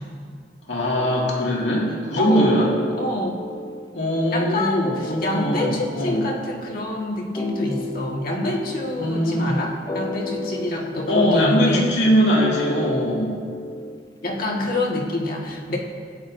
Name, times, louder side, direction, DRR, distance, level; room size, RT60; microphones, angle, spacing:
voice 1, 0.7-2.7 3.9-6.2 9.0-9.5 11.1-13.4, equal, 75° left, -3 dB, 2.3 m, -21 dB
sound 1, 0.9-14.7, left 1 dB, 20° left, 0.6 m, -33 dB
voice 2, 2.1-2.5 3.0-3.4 4.3-11.9 14.2-15.8, left 1 dB, 55° left, -1 dB, 1.7 m, -26 dB
17.5 x 9.8 x 2.7 m, 2.1 s
head